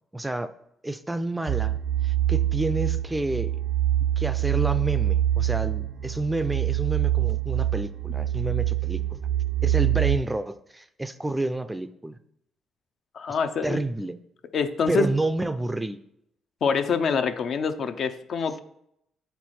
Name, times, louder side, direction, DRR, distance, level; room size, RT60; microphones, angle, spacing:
voice 1, 0.1-0.5 0.8-3.6 4.2-9.2 9.6-12.2 13.6-14.2 14.9-16.0, right 2 dB, 10° right, 12 dB, 0.4 m, -29 dB
sound 1, 1.5-10.2, right 13 dB, 85° right, 0.5 m, -25 dB
voice 2, 13.1-13.8 14.5-15.1 16.6-18.6, left 5 dB, 60° left, 8 dB, 0.6 m, -25 dB
7.5 x 4.6 x 4.2 m, 0.76 s
cardioid pair, 90°, 0 cm